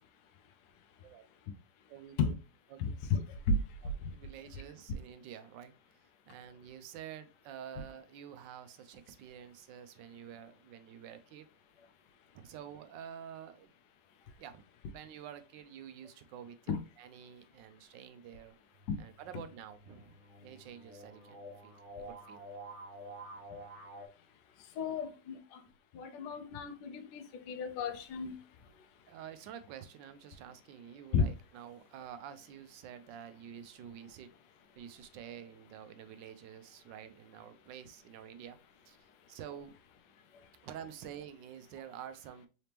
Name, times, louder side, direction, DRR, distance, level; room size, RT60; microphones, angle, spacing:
voice 1, 1.9-2.3 2.7-2.8 3.8-5.7 6.3-11.5 12.3-13.7 14.4-14.6 14.9-18.6 19.0-21.8 22.1-22.4 24.8-25.0 29.1-34.3 34.8-38.6 38.9-39.0 39.3-39.7 40.6-42.5, right 9 dB, 85° right, 1.3 m, -49 dB
voice 2, 2.8-3.5 3.8-4.1 16.7-16.8 18.9-19.0 24.8-25.6 25.9-28.4 31.1-31.3, left 4 dB, 75° left, 1.2 m, -33 dB
sound 1, 18.7-24.1, right 1 dB, 50° right, 1.2 m, -49 dB
4.0 x 3.3 x 2.8 m
omnidirectional pair, 1.9 m